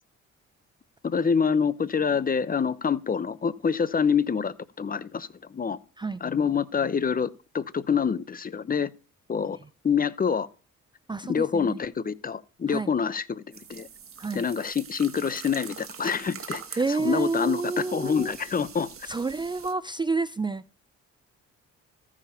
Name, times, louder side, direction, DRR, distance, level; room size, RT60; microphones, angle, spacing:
voice 1, 1.0-5.8 6.2-7.3 7.5-8.9 9.3-9.6 9.8-10.5 11.2-13.4 13.7-13.9 14.3-16.6 17.0-18.9, left 6 dB, 30° left, 0.7 m, -26 dB
voice 2, 11.1-11.8 12.7-12.9 14.2-14.5 16.8-18.4 19.1-20.6, right 3 dB, 15° right, 0.4 m, -29 dB
sound 1, 13.5-19.7, right 7 dB, 45° right, 1.6 m, -43 dB
14.5 x 4.9 x 5.6 m
cardioid pair, 90°, 30 cm